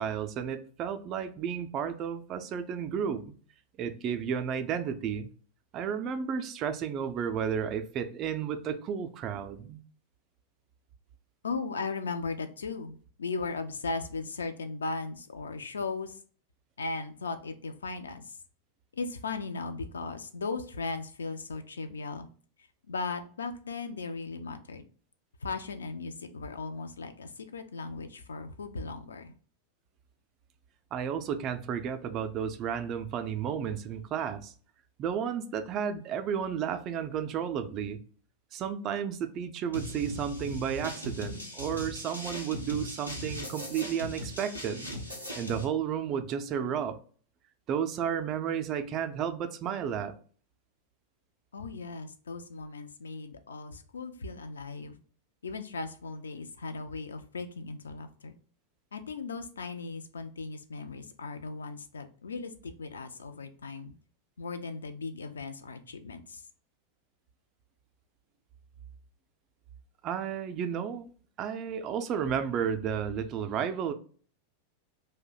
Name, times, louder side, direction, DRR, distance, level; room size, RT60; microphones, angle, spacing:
voice 1, 0.0-3.2 3.8-5.3 5.7-9.8 30.9-34.5 35.0-38.0 38.5-44.9 45.4-47.0 47.7-50.2 70.0-71.1 71.4-73.9, right 8 dB, 35° right, 0.4 m, -32 dB
voice 2, 11.4-16.2 16.8-18.4 18.9-22.3 22.9-24.8 25.4-29.3 51.5-55.0 55.4-58.3 58.9-63.9 64.4-66.4, left 4 dB, 70° left, 0.4 m, -37 dB
sound 1, 39.7-45.6, left 1 dB, 90° left, 0.9 m, -39 dB
2.6 x 2.1 x 3.7 m
figure-of-eight pair, 90°, 0 cm